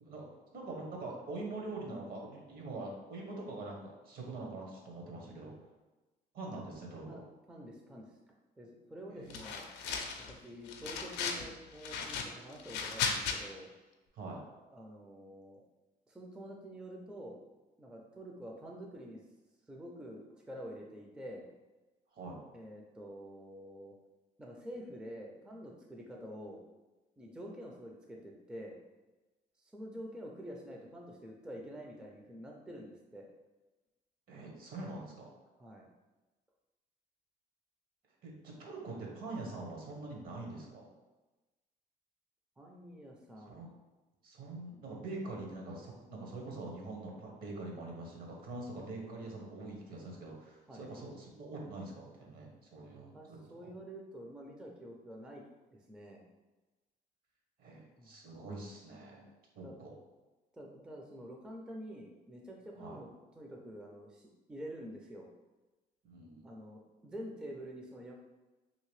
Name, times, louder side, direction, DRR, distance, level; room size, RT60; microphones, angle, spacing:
voice 1, 0.1-5.5 6.3-7.2 9.1-9.5 14.1-14.4 22.1-22.4 34.3-35.3 38.2-40.9 43.4-43.7 44.2-53.4 57.6-59.3 59.5-59.9 62.8-63.0 66.0-66.5, right 2 dB, 60° right, -1 dB, 0.9 m, -44 dB
voice 2, 7.5-8.1 8.6-9.7 10.3-13.7 14.7-15.6 16.1-17.4 17.8-19.2 19.7-21.5 22.5-23.9 24.4-26.6 27.2-28.8 29.6-33.3 35.6-35.9 42.6-43.5 50.7-50.9 53.1-55.4 55.7-56.2 58.0-58.1 59.6-59.7 60.5-63.1 63.4-65.3 66.4-68.1, equal, 5° right, -1 dB, 0.4 m, -47 dB
sound 1, 9.3-10.3 10.7-11.5 11.8-13.4, left 6 dB, 85° left, 0.4 m, -36 dB
2.9 x 2.8 x 3.1 m, 1.1 s
cardioid pair, 110°, 17 cm